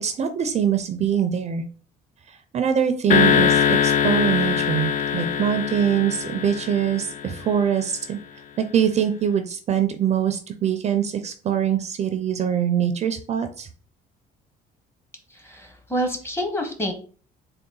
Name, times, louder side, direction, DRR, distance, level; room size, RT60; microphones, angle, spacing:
voice 1, 0.0-1.6 2.3-8.2 8.6-13.7, right 8 dB, 40° right, 8 dB, 0.4 m, -23 dB
sound 1, 3.1-7.6, left 8 dB, 50° left, 0.4 m, -22 dB
voice 2, 15.3-16.9, equal, 15° left, 4 dB, 0.9 m, -27 dB
3.8 x 2.2 x 3.8 m, 0.40 s
cardioid pair, 110°, 17 cm